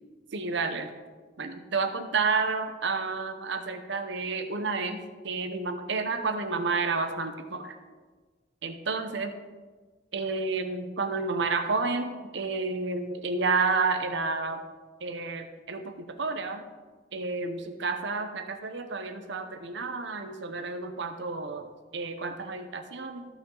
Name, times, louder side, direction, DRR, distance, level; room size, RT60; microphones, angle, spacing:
voice 1, 0.3-0.9 1.4-5.0 5.2-7.7 8.6-9.3 10.1-14.6 15.0-16.6 17.1-23.3, right 4 dB, 65° right, 7 dB, 0.9 m, -30 dB
14.5 x 5.8 x 3.9 m, 1.4 s
head